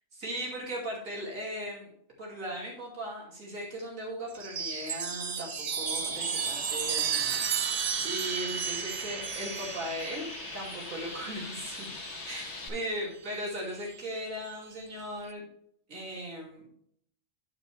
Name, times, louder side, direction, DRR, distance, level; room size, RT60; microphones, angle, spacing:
voice 1, 0.2-1.9 2.2-11.9 12.2-15.4 15.9-16.6, equal, 85° right, -4 dB, 3.0 m, -38 dB
Chime, 4.3-12.1 13.4-14.0, right 7 dB, 60° right, 0.4 m, -33 dB
sound 1, 5.8-12.7, left 3 dB, 60° left, 1.7 m, -43 dB
10.0 x 6.5 x 3.4 m, 0.68 s
omnidirectional pair, 1.3 m